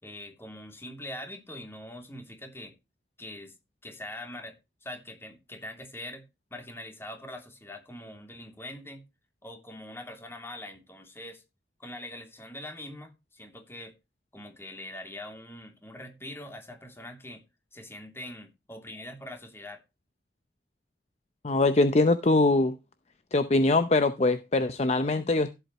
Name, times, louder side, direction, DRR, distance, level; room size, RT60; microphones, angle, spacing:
voice 1, 0.0-2.7 3.2-3.5 3.8-6.2 6.5-9.0 9.4-11.4 11.8-13.9 14.3-17.4 17.7-19.8, left 1 dB, 15° left, 2.8 m, -43 dB
voice 2, 21.4-22.8 23.3-25.5, left 2 dB, 40° left, 0.7 m, -23 dB
15.5 x 7.9 x 3.1 m
head